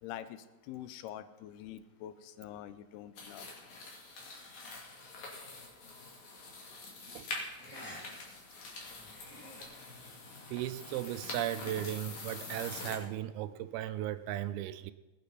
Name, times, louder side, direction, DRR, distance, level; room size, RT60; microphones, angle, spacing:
voice 1, 0.0-3.5, left 11 dB, 85° left, 2.7 m, -45 dB
sound 1, 3.2-13.0, left 3 dB, 50° left, 3.3 m, -45 dB
sound 2, 6.0-6.2 7.6-8.0 8.4-8.5 9.0-9.6, equal, 5° left, 1.4 m, -50 dB
voice 2, 10.5-14.9, right 13 dB, 85° right, 2.4 m, -36 dB
19.5 x 9.2 x 4.1 m
omnidirectional pair, 4.5 m